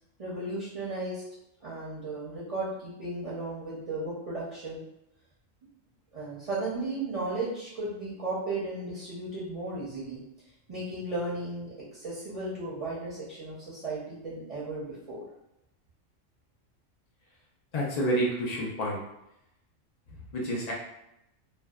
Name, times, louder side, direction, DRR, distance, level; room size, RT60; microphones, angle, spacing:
voice 1, 0.2-1.2 1.6-4.8 6.1-10.2 10.7-15.3, right 2 dB, 45° right, -7 dB, 0.4 m, -35 dB
voice 2, 17.7-19.0 20.3-20.7, right 1 dB, 70° left, -4 dB, 0.4 m, -28 dB
2.6 x 2.1 x 2.2 m, 0.84 s
omnidirectional pair, 1.3 m